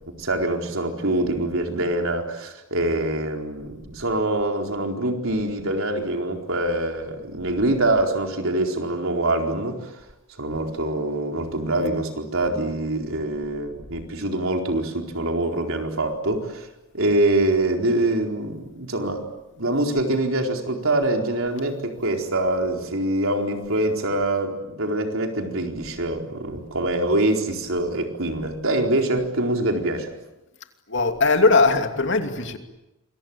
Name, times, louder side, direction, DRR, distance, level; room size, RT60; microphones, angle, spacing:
voice 1, 0.2-10.0 10.4-16.7 16.9-19.3 19.6-30.1, right 1 dB, 65° right, 4.3 m, -24 dB
voice 2, 30.9-32.6, left 3 dB, 55° left, 2.8 m, -19 dB
27.5 x 23.0 x 8.8 m
head